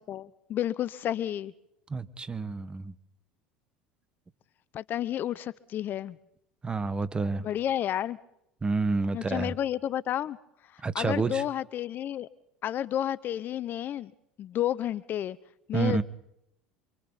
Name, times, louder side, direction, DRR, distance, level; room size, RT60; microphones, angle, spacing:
voice 1, 0.1-1.5 4.7-6.2 7.4-8.2 9.1-10.4 10.7-12.3 12.6-14.1 14.4-15.4 15.7-16.0, left 11 dB, 45° left, 18 dB, 0.7 m, -31 dB
voice 2, 1.9-2.9 6.6-7.5 8.6-9.5 10.8-11.4 15.7-16.0, right 4 dB, 20° right, 14 dB, 1.5 m, -29 dB
28.5 x 24.5 x 4.1 m, 0.81 s
hypercardioid pair, 80°, 5 cm